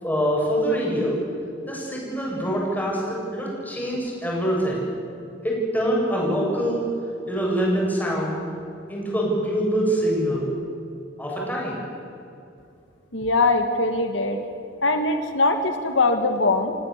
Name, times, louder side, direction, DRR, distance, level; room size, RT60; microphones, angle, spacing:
voice 1, 0.0-1.2 1.7-4.8 5.4-6.8 7.3-8.4 8.9-10.5 11.2-11.8, equal, 10° left, -3 dB, 7.9 m, -24 dB
voice 2, 13.1-14.4 14.8-16.8, left 3 dB, 85° left, 6 dB, 2.0 m, -21 dB
29.0 x 17.5 x 8.4 m, 2.7 s
head